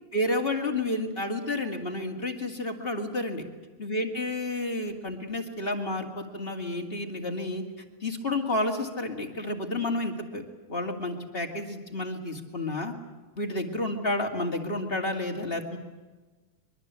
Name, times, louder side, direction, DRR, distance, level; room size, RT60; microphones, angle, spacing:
voice 1, 0.1-3.4 3.8-7.6 8.0-12.9 13.4-15.8, left 2 dB, 20° left, 3 dB, 2.1 m, -30 dB
24.0 x 23.0 x 8.3 m, 1.2 s
omnidirectional pair, 3.5 m